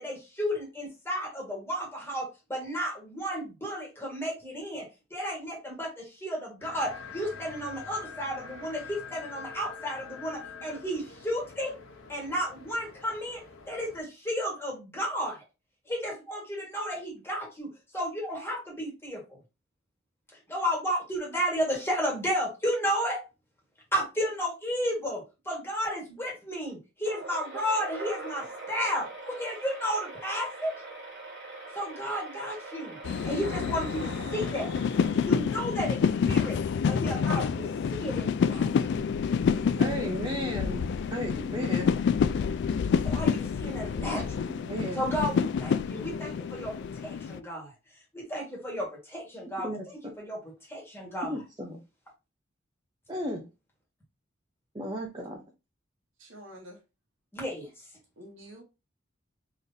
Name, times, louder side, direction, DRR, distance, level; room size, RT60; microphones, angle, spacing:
voice 1, 0.0-11.7 12.1-15.4 15.9-19.4 20.5-23.2 23.9-30.7 31.7-33.0 33.2-34.7 35.1-36.6 36.9-39.0 43.0-44.4 44.9-47.7 48.1-50.4 50.7-51.3 57.3-57.8, equal, 10° left, 1.6 m, -33 dB
sound 1, 6.6-14.0, left 5 dB, 85° left, 0.8 m, -45 dB
sound 2, 27.0-35.8, right 2 dB, 55° right, 1.2 m, -42 dB
sound 3, 33.0-47.4, left 6 dB, 60° left, 0.3 m, -28 dB
voice 2, 39.8-42.0 44.5-45.0 49.6-49.9 51.3-51.8 53.1-53.5 54.7-55.4, equal, 20° right, 0.6 m, -35 dB
voice 3, 56.2-56.8 58.2-58.6, equal, 80° right, 1.4 m, -47 dB
3.8 x 3.3 x 2.7 m
head